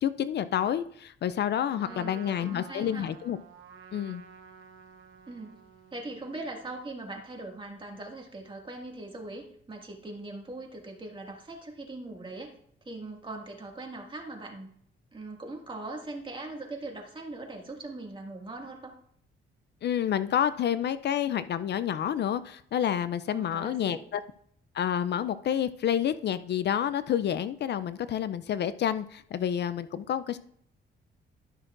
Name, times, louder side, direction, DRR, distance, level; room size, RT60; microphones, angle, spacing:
voice 1, 0.0-3.4 3.9-4.2 19.8-24.2 24.7-30.4, left 9 dB, 60° left, 14 dB, 0.4 m, -29 dB
Trumpet, 1.7-6.9, right 6 dB, 80° right, 0.9 m, -51 dB
voice 2, 1.8-3.1 5.3-5.5 5.9-12.5 12.9-14.7 15.1-19.0 23.3-24.0 30.3-30.4, right 2 dB, 25° right, 0 dB, 2.0 m, -41 dB
12.5 x 6.1 x 2.5 m, 0.65 s
cardioid pair, 95°, 20 cm